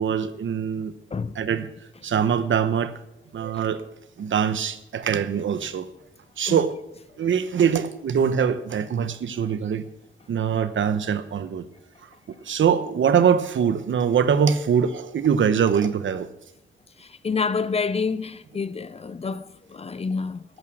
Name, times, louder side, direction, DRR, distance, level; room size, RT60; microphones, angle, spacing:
voice 1, 0.0-0.9 1.3-1.7 2.0-2.9 3.3-3.8 4.2-5.9 6.4-6.8 7.2-9.8 10.3-11.6 12.0-16.3, right 7 dB, 75° right, 1.0 m, -23 dB
voice 2, 17.0-20.4, left 5 dB, 30° left, 0.6 m, -28 dB
12.5 x 9.5 x 6.3 m
wide cardioid pair, 120°, 20 cm